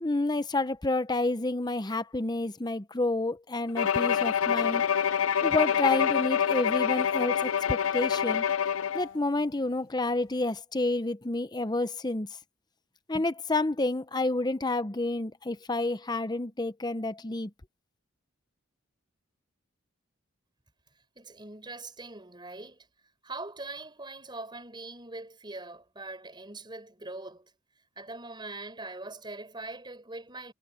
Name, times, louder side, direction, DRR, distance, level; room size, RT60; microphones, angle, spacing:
voice 1, 0.0-4.9 5.4-8.4 8.9-12.3 13.1-17.5, left 2 dB, 20° left, 0.8 m, -29 dB
Bowed string instrument, 3.8-9.1, left 8 dB, 85° left, 0.6 m, -26 dB
voice 2, 21.1-22.9 23.2-27.5 28.0-30.5, right 2 dB, 20° right, 5.0 m, -42 dB
head